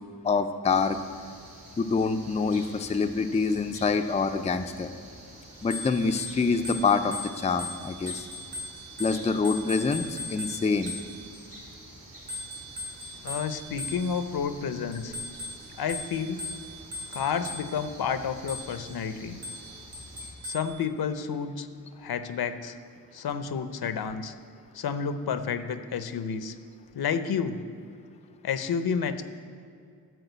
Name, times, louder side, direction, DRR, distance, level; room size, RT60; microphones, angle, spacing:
voice 1, 0.2-1.0 1.8-4.9 5.6-8.3 9.0-10.9, left 4 dB, 20° left, 7 dB, 0.3 m, -26 dB
sound 1, 0.6-20.3, right 1 dB, 65° right, 3.0 m, -48 dB
Bicycle bell, 5.6-11.4 12.3-14.4 14.9-17.9 18.5-18.9 19.4-20.8, left 1 dB, 50° right, 2.7 m, -39 dB
voice 2, 13.2-15.2 15.8-16.5 17.1-19.4 20.4-21.7 22.0-22.7 23.1-24.3 24.7-26.5 26.9-27.6 28.4-29.2, left 6 dB, 90° left, 10 dB, 0.7 m, -30 dB
12.5 x 4.6 x 8.0 m, 2.4 s
wide cardioid pair, 180°, 36 cm